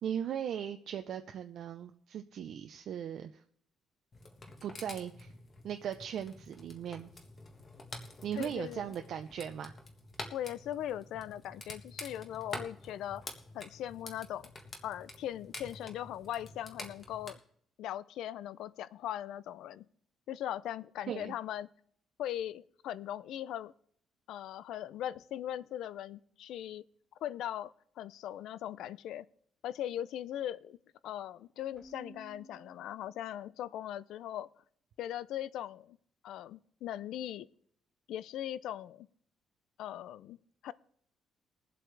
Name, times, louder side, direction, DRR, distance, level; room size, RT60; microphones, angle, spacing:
voice 1, 0.0-3.4 4.6-5.3 5.6-7.1 8.2-9.7 21.1-21.3, right 9 dB, 55° right, 6 dB, 0.6 m, -38 dB
sound 1, 4.1-17.3, left 2 dB, 30° left, 1.5 m, -48 dB
voice 2, 8.4-8.8 10.3-13.3 13.5-14.5 14.8-17.4 17.8-19.9 20.3-21.7 22.2-23.7 24.3-26.8 27.2-29.3 29.6-30.8 31.0-34.5 35.0-36.0 36.2-37.5 38.1-39.1 39.8-40.4 40.6-40.7, left 11 dB, 80° left, 19 dB, 0.4 m, -39 dB
Keyboard (musical), 31.8-33.6, right 1 dB, 5° left, 2.3 m, -55 dB
21.5 x 7.8 x 3.3 m, 0.64 s
cardioid pair, 170°, 0 cm